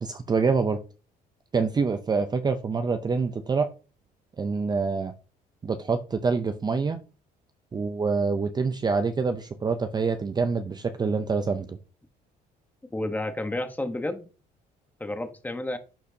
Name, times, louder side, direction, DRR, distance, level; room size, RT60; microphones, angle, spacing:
voice 1, 0.0-0.8 1.5-3.7 4.4-5.1 5.6-7.0 7.7-11.8, right 4 dB, 25° right, 8 dB, 0.6 m, -26 dB
voice 2, 12.9-14.3 15.0-15.8, left 1 dB, 10° left, 7 dB, 1.2 m, -31 dB
11.5 x 4.3 x 2.8 m, 0.34 s
cardioid pair, 110°, 17 cm